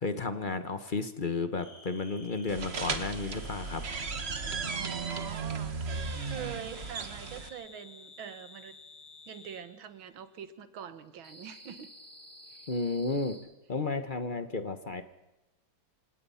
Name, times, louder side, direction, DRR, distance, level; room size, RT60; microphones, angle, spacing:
voice 1, 0.0-3.8 12.7-13.4 13.7-15.0, left 3 dB, 35° left, 10 dB, 0.8 m, -32 dB
sound 1, 1.6-4.3 5.9-9.7 11.2-13.4, left 3 dB, 75° left, 5.7 m, -52 dB
sound 2, 2.5-7.5, right 4 dB, 35° right, 1.4 m, -35 dB
voice 2, 4.6-8.8 9.3-11.9 12.5-12.7, right 8 dB, 85° right, 12 dB, 2.0 m, -44 dB
27.0 x 17.5 x 5.6 m, 1.0 s
omnidirectional pair, 2.1 m